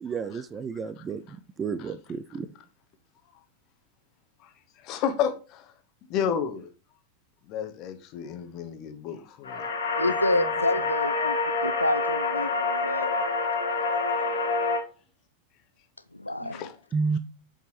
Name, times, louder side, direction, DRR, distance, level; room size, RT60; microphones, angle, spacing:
voice 1, 0.0-1.2 1.6-2.5 16.4-16.5 16.9-17.2, right 5 dB, 20° right, 0.5 m, -30 dB
voice 2, 1.0-1.4 1.8-1.9 4.4-4.5 4.8-5.7 6.1-6.7 7.5-9.6 10.0-10.1 16.5-16.8, left 8 dB, 40° left, 1.0 m, -32 dB
sound 1, 9.4-14.8, left 3 dB, 65° left, 1.4 m, -27 dB
voice 3, 10.0-11.4 11.6-13.2 16.1-16.7, left 2 dB, 85° left, 0.3 m, -28 dB
6.7 x 5.4 x 3.1 m
figure-of-eight pair, 90°, 0 cm